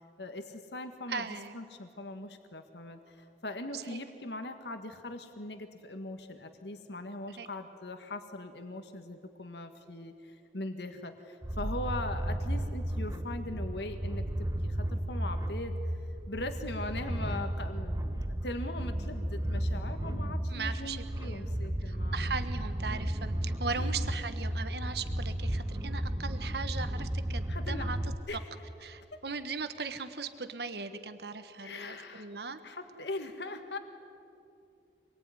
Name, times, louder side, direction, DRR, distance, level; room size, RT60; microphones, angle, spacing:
voice 1, 0.2-15.8 16.3-22.3 23.7-24.1 27.5-27.9 28.3-28.5 30.9-31.1 31.6-32.3 32.6-33.8, left 2 dB, 80° left, 6 dB, 1.8 m, -41 dB
voice 2, 1.1-1.6 3.7-3.8 7.4-7.5 20.5-21.5 21.9-28.0 28.8-32.6, right 5 dB, 70° right, 10 dB, 1.3 m, -38 dB
sound 1, 11.4-28.1, right 1 dB, 20° right, 0.8 m, -34 dB
27.0 x 21.5 x 9.8 m, 2.7 s
head